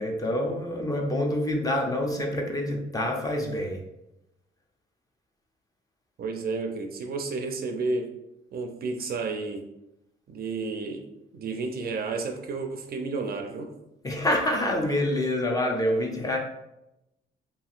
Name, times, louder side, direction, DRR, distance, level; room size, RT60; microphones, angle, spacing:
voice 1, 0.0-3.8 14.0-16.4, left 1 dB, 20° left, 1 dB, 0.5 m, -27 dB
voice 2, 6.2-8.1 8.5-9.7 10.3-11.0 11.3-13.7, right 3 dB, 50° right, 4 dB, 0.4 m, -31 dB
2.8 x 2.7 x 2.4 m, 0.88 s
cardioid pair, 90°, 20 cm